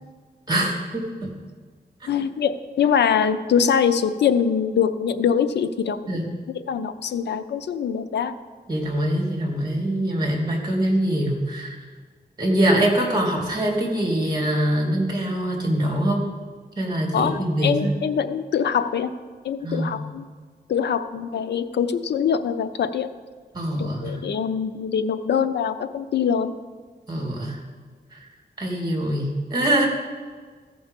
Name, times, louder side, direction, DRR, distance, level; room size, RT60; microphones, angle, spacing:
voice 1, 0.5-1.3 6.1-6.3 8.7-11.8 12.4-16.2 16.8-18.0 19.6-20.0 23.5-24.2 27.1-27.6 28.1-28.3 28.6-29.8, right 1 dB, 25° right, -1 dB, 2.5 m, -23 dB
voice 2, 2.1-6.0 6.7-8.3 17.1-19.1 19.4-20.2 20.7-23.1 24.0-26.6, left 7 dB, 90° left, 10 dB, 0.6 m, -23 dB
15.0 x 5.3 x 5.2 m, 1.5 s
wide cardioid pair, 115°, 17 cm